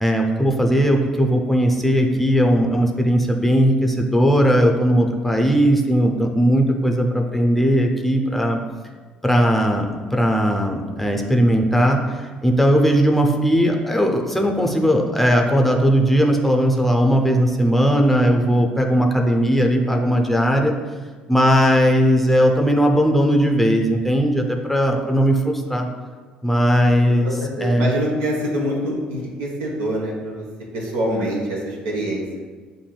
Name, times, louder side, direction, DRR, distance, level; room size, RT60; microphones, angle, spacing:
voice 1, 0.0-8.6 9.2-20.7 21.3-25.9 26.4-27.3 27.6-27.9, equal, 5° left, 2 dB, 0.6 m, -18 dB
voice 2, 27.2-30.4 30.7-32.2, right 1 dB, 80° right, -3 dB, 1.0 m, -25 dB
7.0 x 2.6 x 2.3 m, 1.4 s
hypercardioid pair, 55°, 4 cm